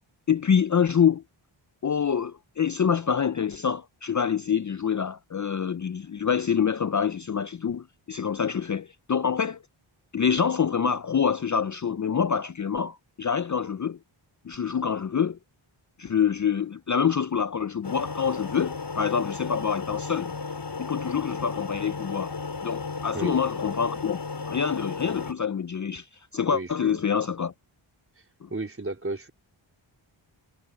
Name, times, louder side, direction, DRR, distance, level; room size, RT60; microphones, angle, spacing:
voice 1, 0.3-1.2 1.8-9.6 10.1-14.0 14.4-15.4 16.0-20.3 20.8-22.4 22.6-24.2 24.5-26.1 26.3-27.5 28.4-28.5, left 7 dB, 40° left, 0.5 m, -26 dB
sound 1, 17.8-25.3, left 4 dB, 55° left, 4.5 m, -34 dB
voice 2, 23.1-23.4 26.5-27.0 28.5-29.3, right 2 dB, 25° right, 4.0 m, -33 dB
wide cardioid pair, 90°, 49 cm